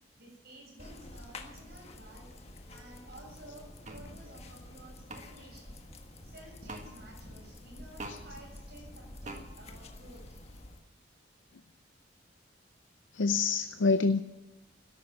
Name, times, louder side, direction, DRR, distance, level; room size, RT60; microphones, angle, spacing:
voice 1, 0.2-2.3 2.7-10.2, right 1 dB, 55° right, -2 dB, 7.5 m, -53 dB
sound 1, 0.8-10.8, left 1 dB, 35° left, 1.4 m, -49 dB
sound 2, 3.8-4.0 5.1-5.2 6.7-6.9 8.0-8.2 9.2-9.4, right 2 dB, 40° right, 1.7 m, -42 dB
voice 2, 13.1-14.2, left 4 dB, 75° left, 10 dB, 0.6 m, -26 dB
13.5 x 11.5 x 9.3 m, 1.0 s
head